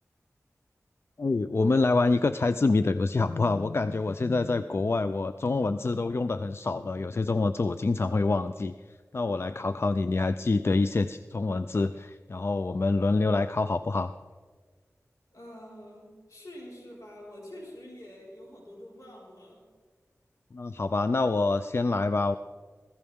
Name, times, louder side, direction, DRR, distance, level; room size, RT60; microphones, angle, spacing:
voice 1, 1.2-8.7 9.1-14.1 20.5-22.4, left 3 dB, 50° left, 11 dB, 0.4 m, -26 dB
voice 2, 15.3-19.6, left 1 dB, 75° left, -4 dB, 4.8 m, -46 dB
15.5 x 15.0 x 3.6 m, 1.5 s
wide cardioid pair, 50°, 6 cm